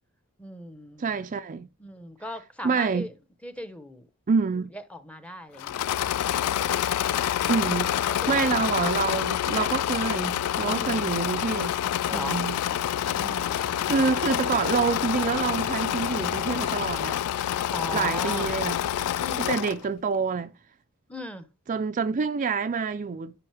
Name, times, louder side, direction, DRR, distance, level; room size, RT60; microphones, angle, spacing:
voice 1, 0.4-1.0 1.8-3.1 3.4-4.1 4.7-6.1 8.1-8.6 10.7-11.0 12.1-12.5 13.1-13.5 17.7-18.5 19.2-19.6 21.1-21.5, left 1 dB, 5° left, 0.9 m, -39 dB
voice 2, 1.0-1.7 2.6-3.1 4.3-4.7 7.5-11.7 12.1-12.6 13.9-17.2 17.9-18.8 19.5-20.5 21.7-23.3, right 5 dB, 35° right, 0.4 m, -27 dB
Engine / Mechanisms, 5.6-19.8, left 11 dB, 80° left, 0.3 m, -27 dB
Squeak, 11.1-17.2 17.5-17.8 18.3-19.0, left 3 dB, 50° left, 1.9 m, -45 dB
9.7 x 5.2 x 3.4 m
head